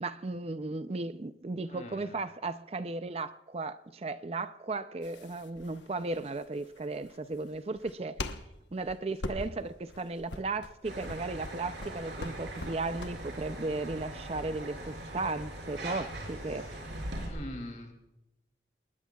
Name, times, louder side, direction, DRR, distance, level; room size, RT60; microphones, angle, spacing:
voice 1, 0.0-8.2 8.7-16.6, right 3 dB, 35° right, 11 dB, 0.5 m, -35 dB
voice 2, 1.7-2.2 17.3-17.9, left 1 dB, 45° left, 4 dB, 2.8 m, -42 dB
sound 1, 5.0-13.3, left 2 dB, 90° left, 1.1 m, -42 dB
sound 2, 10.8-17.3, right 1 dB, 90° right, 5.8 m, -41 dB
28.5 x 19.5 x 2.3 m, 0.94 s
head